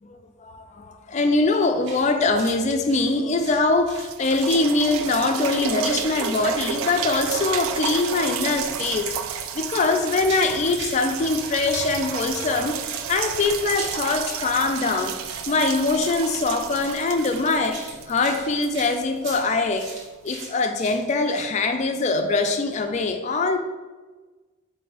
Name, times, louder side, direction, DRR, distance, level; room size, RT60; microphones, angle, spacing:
voice 1, 0.0-9.1 9.5-15.2 15.5-19.9 20.2-23.6, left 3 dB, 35° left, 6 dB, 0.3 m, -23 dB
sound 1, 1.8-2.1 2.4-2.6 2.9-4.1 4.3-5.1 5.3-7.5 7.8-8.0 8.3-9.0 9.3-11.0 11.3-12.0 12.3-21.5, right 3 dB, 60° right, 0.9 m, -41 dB
sound 2, 3.4-3.5 3.9-19.6 20.3-20.4, right 8 dB, 80° right, 0.3 m, -31 dB
3.9 x 2.6 x 4.7 m, 1.3 s
head